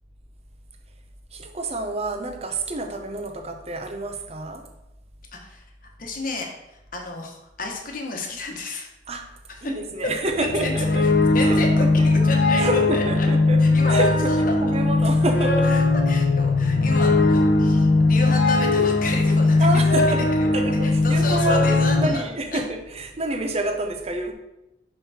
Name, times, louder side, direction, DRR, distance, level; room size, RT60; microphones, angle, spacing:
voice 1, 1.3-4.7 9.1-9.3 9.6-11.1 11.4-12.1 12.6-15.8 19.6-20.3 20.5-21.7 22.0-24.3, right 2 dB, 35° right, 5 dB, 0.8 m, -28 dB
voice 2, 5.3-5.6 6.0-8.9 10.4-10.7 11.3-12.6 12.9-13.0 13.6-13.9 14.5-14.8 15.7-19.6 20.3-20.5 20.8-22.2 22.5-22.6, left 3 dB, 50° left, 1 dB, 1.2 m, -31 dB
sound 1, 10.3-22.1, left 2 dB, 70° left, 0.8 m, -19 dB
5.6 x 5.5 x 4.3 m, 0.92 s
head